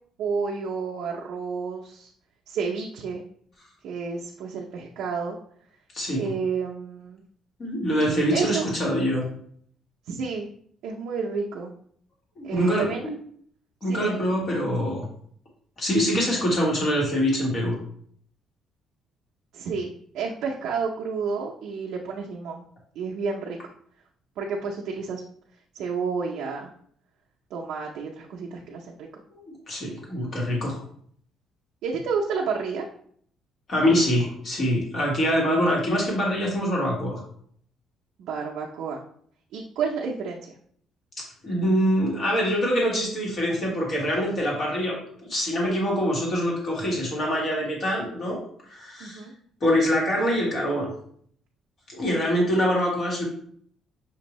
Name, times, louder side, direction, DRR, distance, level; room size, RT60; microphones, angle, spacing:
voice 1, 0.2-2.1 2.5-3.2 3.8-5.4 6.1-7.2 8.3-8.6 10.1-10.5 10.8-11.7 12.4-13.1 13.8-14.2 19.5-22.6 23.0-23.6 24.4-25.2 25.7-26.7 27.5-29.1 31.8-32.9 38.2-39.0 39.5-40.5 49.0-49.3, right 5 dB, 70° right, -2 dB, 0.5 m, -30 dB
voice 2, 5.9-6.3 7.6-9.2 12.4-12.9 13.8-15.0 15.8-17.8 29.7-30.8 33.7-37.2 41.2-45.0 45.2-48.4 48.7-49.2 49.6-50.9 51.9-53.2, equal, 35° left, -2 dB, 1.4 m, -24 dB
6.0 x 2.6 x 3.0 m, 0.62 s
cardioid pair, 170°, 0 cm